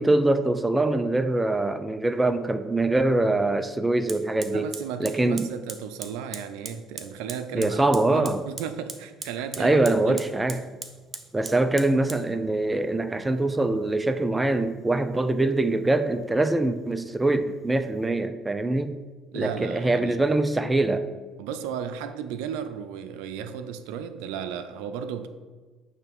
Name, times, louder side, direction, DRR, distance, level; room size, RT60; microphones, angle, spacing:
voice 1, 0.0-4.7 5.0-5.5 7.5-8.4 9.6-10.6 11.3-18.9 19.3-21.1, right 2 dB, 15° right, 0.5 m, -23 dB
Fire, 4.1-18.1, right 4 dB, 30° right, 0.9 m, -44 dB
voice 2, 4.5-10.5 19.3-20.2 21.4-25.3, right 8 dB, 85° right, 0.5 m, -34 dB
8.9 x 3.3 x 6.0 m
supercardioid pair, 85°, 0 cm